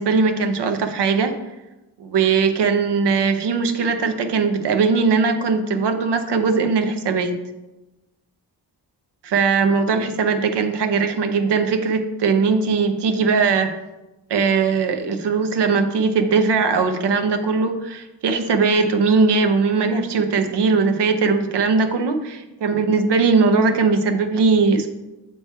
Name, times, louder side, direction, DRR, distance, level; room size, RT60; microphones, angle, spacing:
voice 1, 0.0-1.3 2.0-7.3 9.2-13.7 14.3-24.9, right 4 dB, 75° right, 7 dB, 0.8 m, -19 dB
7.7 x 3.2 x 4.5 m, 1.0 s
cardioid pair, 85°, 42 cm